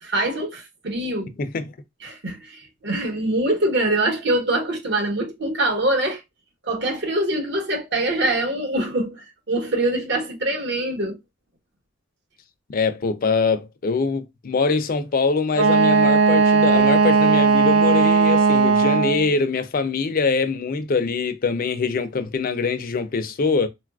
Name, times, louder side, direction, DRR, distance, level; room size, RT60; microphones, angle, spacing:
voice 1, 0.0-1.3 2.0-6.2 6.6-11.2, right 1 dB, 60° right, 1.0 m, -24 dB
voice 2, 12.7-23.7, left 4 dB, 45° left, 0.4 m, -23 dB
Wind instrument woodwind instrument, 15.5-19.3, right 5 dB, 75° right, 0.3 m, -17 dB
3.8 x 2.3 x 2.3 m
head